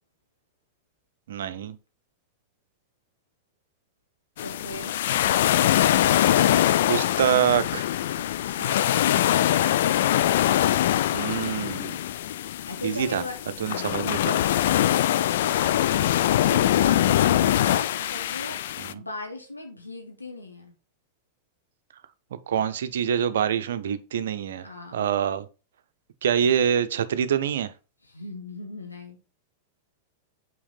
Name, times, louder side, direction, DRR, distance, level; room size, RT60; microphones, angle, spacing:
voice 1, 1.3-1.8 6.9-7.9 11.1-12.0 12.8-13.2 13.6-14.4 18.8-19.0 22.5-25.5 26.2-27.7, right 8 dB, 60° right, 0.6 m, -25 dB
voice 2, 4.4-5.0 8.1-9.9 12.7-14.0 14.7-18.6 18.9-20.7 24.6-25.0 28.1-29.2, left 2 dB, 80° left, 1.4 m, -39 dB
sound 1, 4.4-18.9, left 12 dB, 55° left, 0.3 m, -23 dB
5.8 x 4.7 x 4.0 m
figure-of-eight pair, 90°, 0 cm